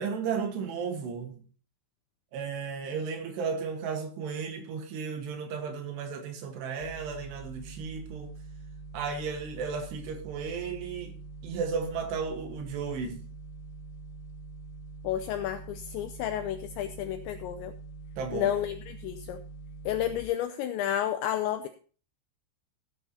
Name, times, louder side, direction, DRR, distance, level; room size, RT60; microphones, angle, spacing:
voice 1, 0.0-1.4 2.3-8.3 8.9-11.2 11.4-13.2 18.2-18.5, right 5 dB, 70° right, 3.1 m, -34 dB
sound 1, 6.8-20.2, right 3 dB, 65° left, 3.6 m, -45 dB
voice 2, 15.0-17.7 18.3-19.4 19.9-21.7, left 11 dB, 85° left, 2.6 m, -31 dB
16.5 x 9.9 x 2.8 m
omnidirectional pair, 5.8 m